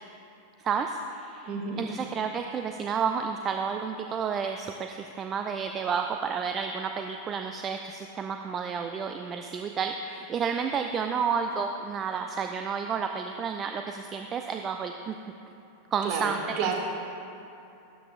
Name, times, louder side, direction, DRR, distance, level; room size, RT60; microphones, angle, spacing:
voice 1, 0.6-1.5 1.8-15.2 15.9-16.8, right 6 dB, 25° right, 5 dB, 0.4 m, -31 dB
voice 2, 1.5-1.9 16.0-16.8, right 6 dB, 40° right, 3 dB, 1.2 m, -30 dB
12.5 x 10.0 x 2.5 m, 2.8 s
figure-of-eight pair, 90°, 0 cm